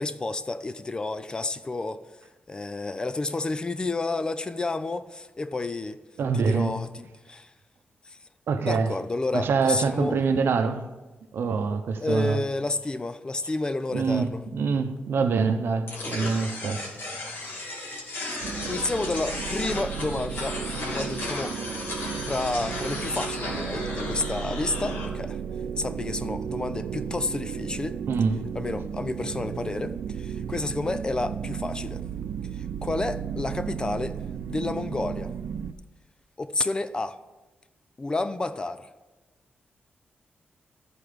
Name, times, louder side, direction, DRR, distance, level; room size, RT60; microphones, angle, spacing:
voice 1, 0.0-2.0 2.5-6.0 6.3-7.5 8.0-8.2 8.6-10.2 12.0-14.4 18.7-21.6 22.3-25.4 25.8-28.0 28.6-32.0 32.5-34.2 34.5-35.3 36.4-37.2 38.0-38.9, left 2 dB, 20° left, 0.4 m, -30 dB
voice 2, 6.2-6.8 8.5-8.9 9.3-10.9 11.3-12.4 13.9-16.9 28.1-28.5, right 5 dB, 75° right, 0.8 m, -25 dB
sound 1, 15.9-25.1, left 2 dB, 65° left, 2.6 m, -34 dB
sound 2, 18.4-35.7, right 8 dB, 55° right, 0.3 m, -34 dB
13.5 x 4.5 x 5.1 m
wide cardioid pair, 175°, 4 cm